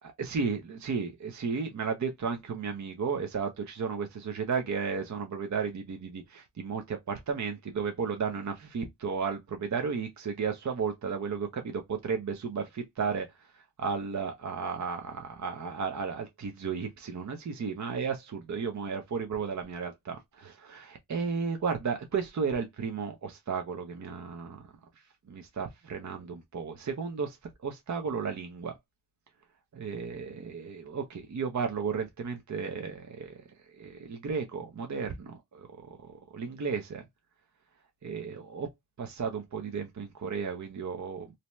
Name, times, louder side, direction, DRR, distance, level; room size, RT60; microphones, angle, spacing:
voice 1, 0.0-28.8 29.7-37.0 38.0-38.7 39.0-41.3, right 5 dB, 40° right, 0.7 m, -34 dB
2.8 x 2.1 x 3.1 m
cardioid pair, 45°, 43 cm